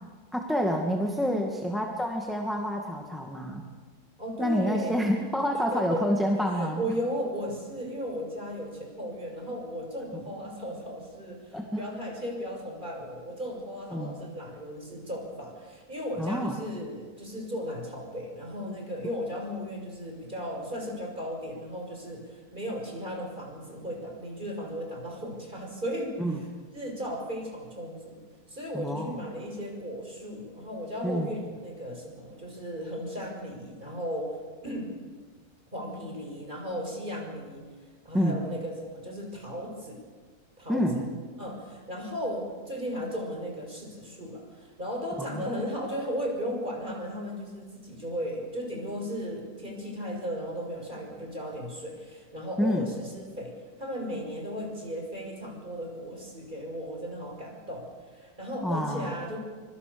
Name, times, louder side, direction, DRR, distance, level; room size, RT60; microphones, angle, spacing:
voice 1, 0.3-3.6 4.4-6.8 11.5-11.8 13.9-14.2 16.2-16.6 26.2-26.4 28.7-29.1 31.0-31.3 38.1-38.4 40.7-41.0 45.2-45.4 52.6-52.9 58.6-59.2, equal, ahead, 1 dB, 2.1 m, -28 dB
voice 2, 4.2-4.9 5.5-6.1 6.5-26.5 26.7-28.2 28.5-34.9 35.7-37.7 38.0-40.0 40.6-41.1 41.4-53.5 53.8-59.4, equal, 30° right, 1 dB, 6.3 m, -36 dB
25.0 x 25.0 x 7.1 m, 1.5 s
omnidirectional pair, 1.6 m